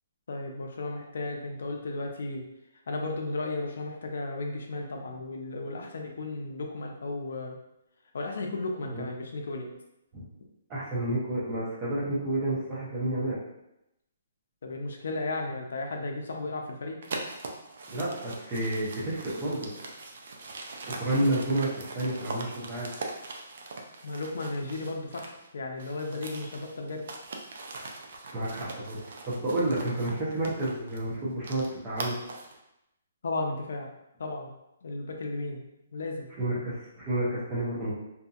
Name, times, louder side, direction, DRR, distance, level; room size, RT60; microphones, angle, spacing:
voice 1, 0.3-2.5 2.9-7.6 8.1-9.7 14.6-17.0 24.0-27.1 33.2-33.9 34.2-34.5 34.8-35.6 35.9-36.3, left 2 dB, 75° left, 2 dB, 0.5 m, -34 dB
voice 2, 10.7-13.4 17.9-19.7 20.9-22.9 28.3-32.1 36.4-37.9, right 1 dB, 20° right, -8 dB, 0.8 m, -30 dB
sound 1, 17.0-25.5 25.8-32.6, right 3 dB, 60° right, 0.4 m, -41 dB
2.7 x 2.6 x 2.4 m, 0.86 s
hypercardioid pair, 160°, 0 cm